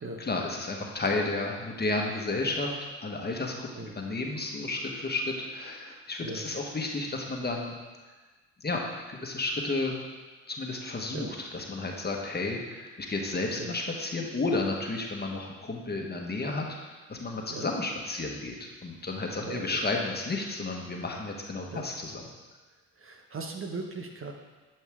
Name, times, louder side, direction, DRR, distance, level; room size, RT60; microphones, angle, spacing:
voice 1, 0.2-2.8 3.0-3.7 3.9-7.7 8.6-8.8 9.1-10.0 10.5-18.6 18.8-22.2, left 2 dB, 30° left, 0 dB, 1.5 m, -32 dB
voice 2, 6.2-6.5 11.1-11.3 13.6-13.7 17.5-17.7 19.4-19.8 21.7-21.8 23.0-24.3, right 3 dB, 40° right, 3 dB, 1.1 m, -38 dB
11.0 x 5.5 x 3.7 m, 1.3 s
supercardioid pair, 65°, 33 cm